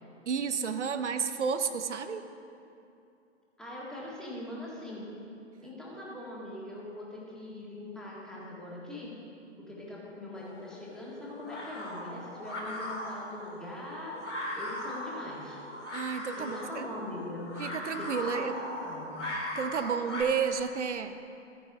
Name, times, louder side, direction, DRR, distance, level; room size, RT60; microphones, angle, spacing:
voice 1, 0.3-2.2 15.9-16.9 17.6-18.5 19.6-21.2, right 6 dB, 70° right, 9 dB, 0.7 m, -31 dB
voice 2, 3.6-5.1 5.6-9.1 9.6-14.2 14.5-15.6 16.3-17.5 17.9-18.5 18.8-19.2, left 1 dB, ahead, -6 dB, 1.8 m, -42 dB
sound 1, 10.3-20.2, left 1 dB, 80° left, 2.2 m, -39 dB
13.5 x 9.2 x 3.6 m, 2.6 s
figure-of-eight pair, 125°, 36 cm